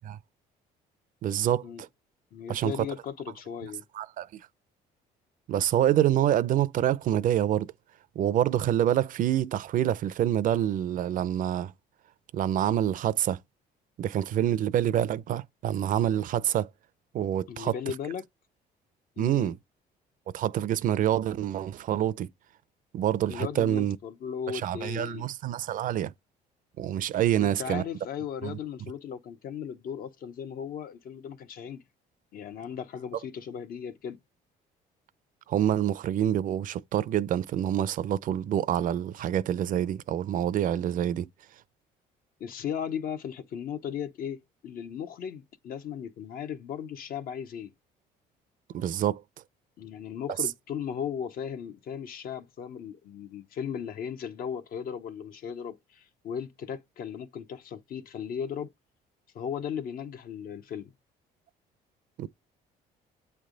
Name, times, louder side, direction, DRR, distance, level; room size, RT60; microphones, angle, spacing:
voice 1, 1.2-1.9 2.5-2.7 3.9-4.4 5.5-7.7 8.2-11.7 12.3-13.4 14.0-16.7 17.1-17.7 19.2-19.6 20.3-22.3 22.9-24.0 24.6-26.1 26.8-27.8 28.4-28.6 35.5-41.3 48.7-49.2 62.2-62.3, right 11 dB, 55° right, 0.5 m, -26 dB
voice 2, 2.3-3.8 17.5-18.2 19.2-19.5 23.3-25.3 27.3-31.8 32.3-34.2 42.4-47.7 49.8-58.7 59.3-60.9, left 8 dB, 60° left, 0.8 m, -36 dB
8.1 x 3.4 x 3.8 m
cardioid pair, 110°, 17 cm